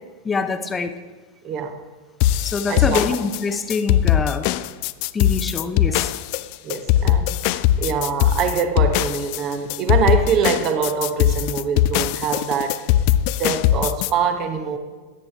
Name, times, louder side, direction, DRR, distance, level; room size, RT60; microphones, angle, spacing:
voice 1, 0.2-0.9 2.4-4.5 5.1-6.1, left 4 dB, 15° left, 10 dB, 0.7 m, -25 dB
voice 2, 1.4-1.8 2.7-3.0 6.6-12.7 13.4-14.8, right 6 dB, 35° right, 8 dB, 1.1 m, -24 dB
sound 1, 2.2-14.1, left 12 dB, 45° left, 0.3 m, -20 dB
14.0 x 10.5 x 3.4 m, 1.4 s
figure-of-eight pair, 90°, 0 cm